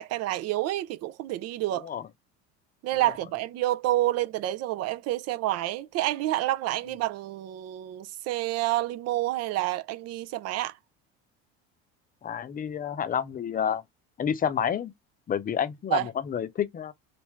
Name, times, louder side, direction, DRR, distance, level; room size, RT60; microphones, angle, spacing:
voice 1, 0.0-1.9 2.8-10.7 15.9-16.1, right 15 dB, 55° right, 0.5 m, -28 dB
voice 2, 12.2-13.8 14.2-14.9 15.3-16.9, left 8 dB, 30° left, 0.6 m, -29 dB
3.5 x 2.5 x 3.1 m
supercardioid pair, 95°, 31 cm